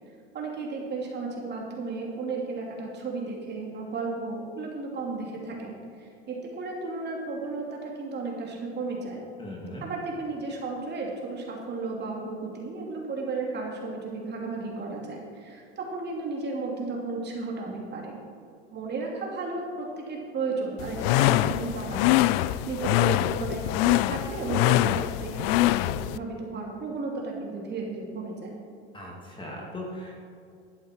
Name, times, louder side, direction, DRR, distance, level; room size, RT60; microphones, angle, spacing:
voice 1, 0.3-9.2 9.8-18.1 18.7-28.5, right 3 dB, 35° right, -1 dB, 3.0 m, -34 dB
voice 2, 9.4-9.8 28.9-30.2, left 1 dB, 15° left, -2 dB, 2.6 m, -39 dB
sound 1, 20.8-26.2, left 15 dB, 65° left, 0.5 m, -24 dB
12.0 x 11.0 x 4.6 m, 2.5 s
supercardioid pair, 110°, 31 cm